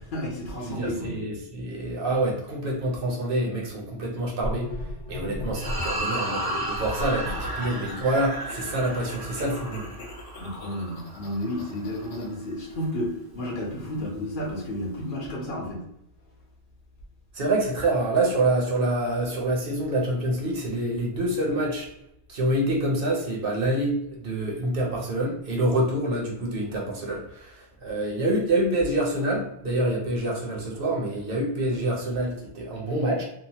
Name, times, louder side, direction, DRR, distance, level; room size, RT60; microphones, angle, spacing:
voice 1, 0.1-1.2 10.3-15.8, left 1 dB, 55° left, -2 dB, 0.8 m, -32 dB
voice 2, 0.6-4.7 5.1-9.9 17.3-21.9 22.3-33.2, right 1 dB, 60° right, -2 dB, 0.8 m, -26 dB
sound 1, 4.4-6.0 6.7-12.3, left 1 dB, 85° left, 0.9 m, -37 dB
sound 2, 5.5-12.1, right 1 dB, 30° right, 0.5 m, -34 dB
2.9 x 2.1 x 2.7 m, 0.78 s
omnidirectional pair, 1.1 m